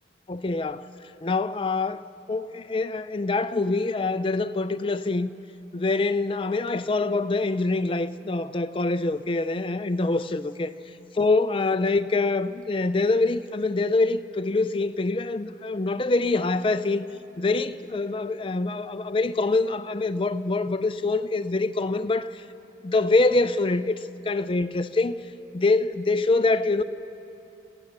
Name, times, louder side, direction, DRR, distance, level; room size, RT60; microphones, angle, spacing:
voice 1, 0.3-2.0 2.3-5.3 5.7-10.7 11.1-17.0 17.4-22.4 22.8-25.2 25.5-26.8, left 3 dB, 25° left, 0.4 m, -25 dB
27.0 x 15.0 x 6.6 m
head